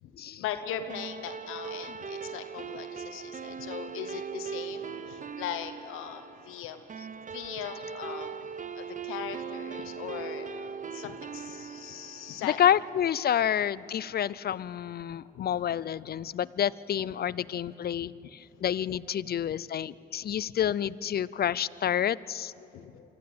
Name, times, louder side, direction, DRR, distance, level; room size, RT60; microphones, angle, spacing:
voice 1, 0.0-8.3 8.7-12.6 13.3-13.4 15.3-15.5 16.0-16.1 18.2-18.3 20.2-20.3 22.7-23.0, left 9 dB, 85° left, 9 dB, 1.0 m, -40 dB
sound 1, 0.9-13.6, right 6 dB, 40° right, 0.9 m, -40 dB
voice 2, 12.4-22.8, left 9 dB, 50° left, 20 dB, 0.5 m, -29 dB
24.5 x 15.0 x 7.7 m, 2.8 s
supercardioid pair, 55°, 21 cm